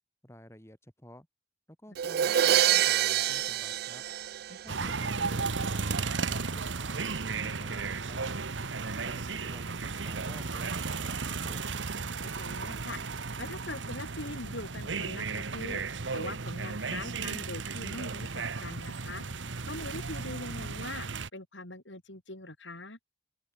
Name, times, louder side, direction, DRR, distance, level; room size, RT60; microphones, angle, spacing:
voice 1, 0.2-1.3 1.7-4.0 4.6-8.4 8.8-11.8, equal, 15° left, 5.8 m, -52 dB
Crash cymbal, 2.0-4.9, right 10 dB, 55° right, 0.4 m, -26 dB
sound 1, 4.7-21.3, right 4 dB, 80° right, 1.2 m, -34 dB
voice 2, 12.2-13.0 13.4-15.8 16.1-19.2 19.7-21.1 21.3-23.0, left 2 dB, 75° left, 7.9 m, -42 dB
open air
head